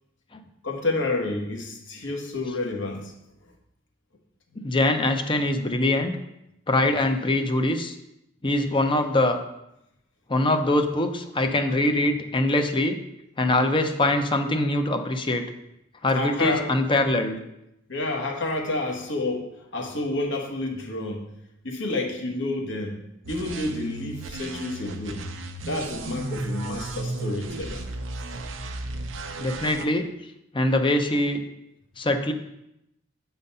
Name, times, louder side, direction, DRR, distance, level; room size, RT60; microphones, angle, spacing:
voice 1, 0.6-3.1 16.1-16.7 17.9-21.3 21.6-23.0 23.3-25.2 25.6-27.9 28.2-28.3, left 2 dB, 70° left, 2 dB, 1.4 m, -29 dB
voice 2, 4.6-6.1 6.7-7.9 8.4-9.4 10.3-13.0 13.4-15.4 16.0-17.4 29.4-30.1 30.5-31.4 32.0-32.3, left 1 dB, 25° left, 6 dB, 0.7 m, -23 dB
sound 1, 23.2-29.8, right 2 dB, 75° right, 0.7 m, -34 dB
8.5 x 4.0 x 5.4 m, 0.85 s
head